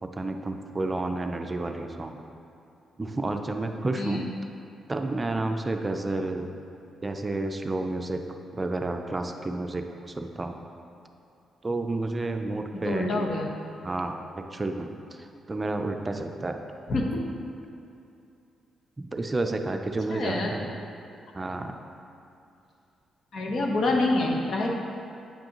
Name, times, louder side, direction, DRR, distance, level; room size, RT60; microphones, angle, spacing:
voice 1, 0.0-2.2 3.0-4.3 4.9-6.5 7.0-8.2 8.6-9.8 10.2-10.6 11.6-13.3 13.8-14.2 14.5-16.6 19.0-20.7 21.3-21.8, right 2 dB, 25° right, 5 dB, 0.4 m, -30 dB
voice 2, 12.7-13.5 16.9-17.2 20.1-20.8 23.3-24.7, left 2 dB, 65° left, 0 dB, 0.9 m, -27 dB
8.6 x 5.2 x 2.9 m, 2.7 s
cardioid pair, 80°, 0 cm